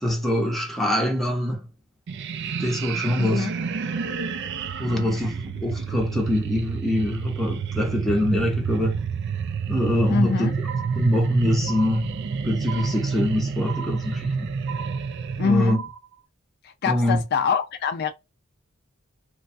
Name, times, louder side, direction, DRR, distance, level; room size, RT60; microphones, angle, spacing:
voice 1, 0.0-1.7 2.6-3.5 4.8-9.0 9.7-10.5 10.9-12.1 12.4-14.6 15.4-15.8 16.9-17.2, left 1 dB, ahead, 0.7 m, -24 dB
sound 1, 2.1-15.6, right 6 dB, 55° right, 0.4 m, -29 dB
voice 2, 3.2-3.5 4.9-5.2 10.1-10.5 15.4-15.9 16.6-18.1, left 5 dB, 50° left, 0.4 m, -25 dB
sound 2, 10.7-11.3 11.7-12.3 12.7-13.3 13.7-14.3 14.7-15.3 15.7-16.2, right 7 dB, 90° right, 0.7 m, -38 dB
3.0 x 2.3 x 2.5 m
head